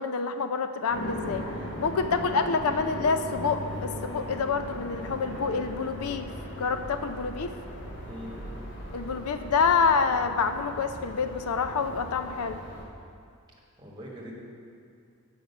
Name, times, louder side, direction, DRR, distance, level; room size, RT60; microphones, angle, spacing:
voice 1, 0.0-1.4 1.8-6.3 6.6-7.5 8.9-12.6, left 5 dB, 85° left, 8 dB, 0.4 m, -27 dB
sound 1, 0.9-12.8, equal, 55° left, 1.3 m, -38 dB
voice 2, 8.0-8.4 13.8-14.3, equal, 20° right, -4 dB, 1.3 m, -42 dB
7.2 x 5.0 x 6.7 m, 2.4 s
head